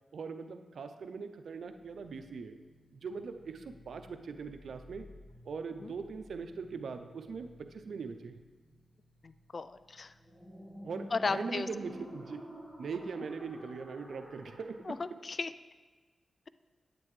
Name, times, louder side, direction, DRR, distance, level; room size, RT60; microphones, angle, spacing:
voice 1, 0.1-2.6 2.9-5.1 5.4-8.4 10.8-12.5 12.8-15.0, right 5 dB, 80° right, 7 dB, 0.5 m, -41 dB
sound 1, 1.6-14.8, equal, 30° left, 2.1 m, -52 dB
voice 2, 9.2-10.1 11.1-11.7 14.9-15.5, left 4 dB, 55° left, 13 dB, 0.3 m, -35 dB
9.4 x 7.6 x 3.2 m, 1.4 s
cardioid pair, 50°, 0 cm